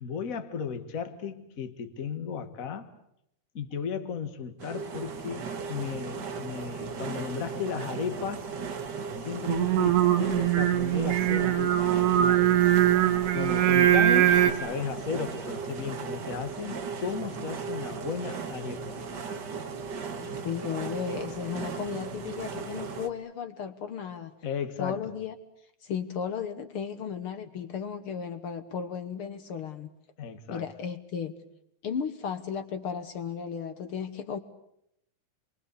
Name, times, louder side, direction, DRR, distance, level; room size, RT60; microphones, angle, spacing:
voice 1, 0.0-2.9 3.5-8.5 9.2-12.7 13.3-19.0 24.4-25.0 30.2-30.6, left 6 dB, 35° left, 1.5 m, -35 dB
sound 1, 4.6-23.1, right 5 dB, 45° right, 1.5 m, -37 dB
Singing, 9.5-14.5, right 12 dB, 75° right, 2.9 m, -22 dB
voice 2, 20.1-24.3 24.8-25.3 25.8-29.9 30.5-31.3 31.8-34.4, left 7 dB, 60° left, 1.6 m, -35 dB
28.5 x 23.5 x 8.4 m
omnidirectional pair, 3.7 m